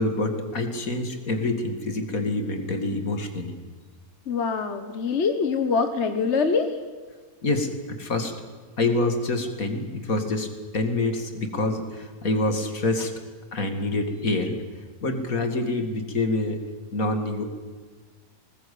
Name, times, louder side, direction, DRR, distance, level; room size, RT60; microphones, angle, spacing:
voice 1, 0.0-3.6 7.4-8.3 8.8-13.1 13.5-14.6 15.0-16.6 16.9-17.4, left 2 dB, 70° left, 6 dB, 2.9 m, -26 dB
voice 2, 4.3-6.8, left 5 dB, 50° left, 7 dB, 1.5 m, -24 dB
20.0 x 20.0 x 8.6 m, 1.5 s
omnidirectional pair, 1.5 m